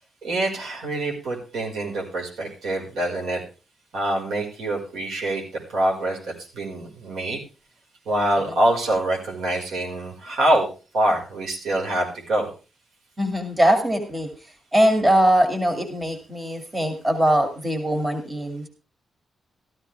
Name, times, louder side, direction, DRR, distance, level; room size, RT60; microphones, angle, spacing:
voice 1, 0.2-3.4 3.9-7.4 8.1-10.7 10.9-12.5, right 1 dB, 85° right, 0 dB, 5.3 m, -25 dB
voice 2, 13.2-14.3 14.7-18.7, right 1 dB, 20° right, 6 dB, 2.9 m, -21 dB
15.0 x 12.5 x 3.5 m, 0.33 s
cardioid pair, 90°, 0 cm